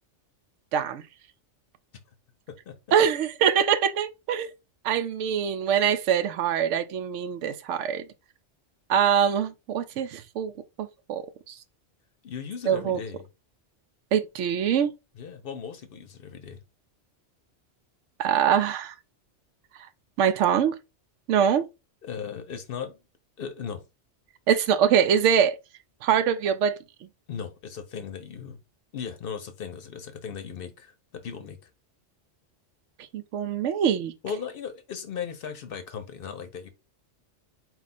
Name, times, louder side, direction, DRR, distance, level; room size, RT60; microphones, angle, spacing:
voice 1, 0.7-1.0 2.9-4.5 4.8-8.0 8.9-10.5 10.8-11.2 11.5-11.6 12.7-13.0 14.1-14.9 18.2-18.9 20.2-20.7 21.3-21.6 24.5-25.6 26.0-26.8 33.1-34.1, right 8 dB, 85° right, 0.9 m, -23 dB
voice 2, 12.2-13.3 15.1-16.6 22.0-23.0 23.4-23.8 27.3-28.6 28.9-31.7 34.2-36.7, left 7 dB, 55° left, 0.7 m, -37 dB
4.2 x 2.3 x 4.1 m
omnidirectional pair, 1.2 m